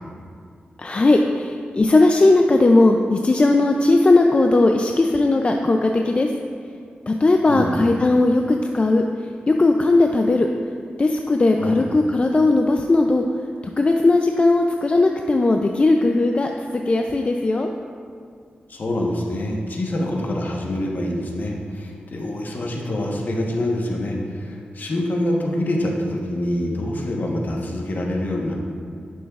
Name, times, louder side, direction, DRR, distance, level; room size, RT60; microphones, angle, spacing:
voice 1, 0.8-6.3 7.1-9.0 9.5-10.5 11.0-13.2 13.8-17.7, left 2 dB, 35° left, 3 dB, 0.4 m, -18 dB
voice 2, 7.4-7.8 11.6-11.8 18.7-28.5, left 1 dB, 55° left, -1 dB, 1.1 m, -25 dB
10.0 x 6.2 x 2.4 m, 2.2 s
cardioid pair, 75°, 4 cm